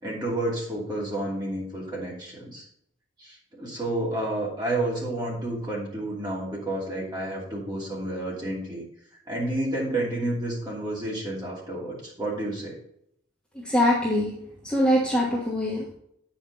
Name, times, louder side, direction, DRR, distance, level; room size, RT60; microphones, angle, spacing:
voice 1, 0.0-2.6 3.2-8.8 9.3-12.8, right 1 dB, 20° right, -5 dB, 2.7 m, -30 dB
voice 2, 13.5-14.4 14.6-15.9, left 1 dB, 5° left, -5 dB, 1.3 m, -23 dB
8.6 x 5.7 x 4.0 m, 0.72 s
head